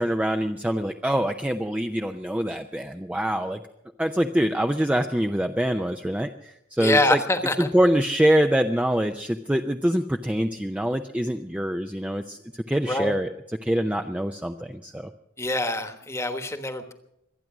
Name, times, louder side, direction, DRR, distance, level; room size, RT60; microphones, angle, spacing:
voice 1, 0.0-3.6 4.0-7.2 7.6-12.4 12.7-13.3 13.6-15.1, right 1 dB, 5° right, 5 dB, 0.5 m, -24 dB
voice 2, 6.8-7.7 12.8-13.1 15.4-16.9, left 2 dB, 15° left, 8 dB, 1.2 m, -25 dB
25.0 x 9.4 x 6.1 m, 0.81 s
head